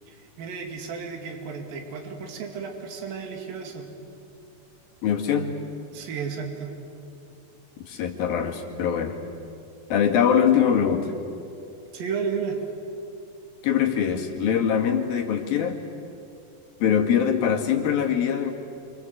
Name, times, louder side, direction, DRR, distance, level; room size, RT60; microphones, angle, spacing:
voice 1, 0.1-3.9 5.9-6.7 11.9-12.6, right 6 dB, 65° right, 3 dB, 4.1 m, -33 dB
voice 2, 5.0-5.5 7.9-9.1 9.9-11.1 13.6-15.8 16.8-18.5, left 8 dB, 70° left, 2 dB, 3.8 m, -22 dB
28.0 x 26.0 x 8.0 m, 2.7 s
omnidirectional pair, 4.5 m